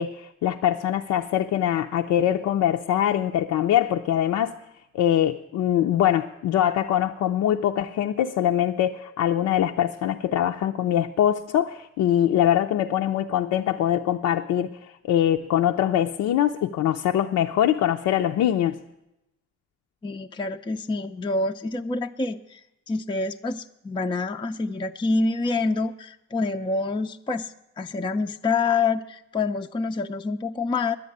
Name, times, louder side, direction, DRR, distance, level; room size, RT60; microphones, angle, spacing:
voice 1, 0.0-4.6 4.9-14.7 15.0-18.8, left 11 dB, 75° left, 4 dB, 0.6 m, -23 dB
voice 2, 20.0-31.0, left 3 dB, 15° left, 6 dB, 0.4 m, -27 dB
10.0 x 9.3 x 9.7 m, 0.89 s
cardioid pair, 90°, 30 cm